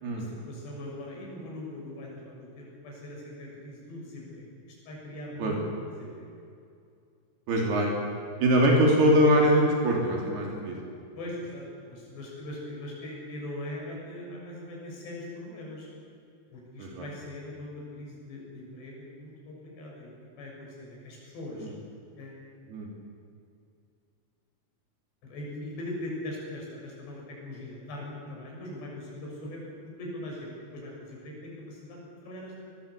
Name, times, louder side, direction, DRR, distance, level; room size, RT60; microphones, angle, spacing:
voice 1, 0.2-6.3 11.2-15.9 16.5-20.1 20.4-21.7 22.2-22.4 25.2-29.6 30.0-32.6, left 1 dB, 90° left, -2 dB, 8.9 m, -41 dB
voice 2, 7.5-7.9 8.4-10.8 16.8-17.1 21.5-21.7 22.7-22.9, equal, 70° right, -1 dB, 5.3 m, -23 dB
23.0 x 19.5 x 8.4 m, 2.5 s
omnidirectional pair, 4.8 m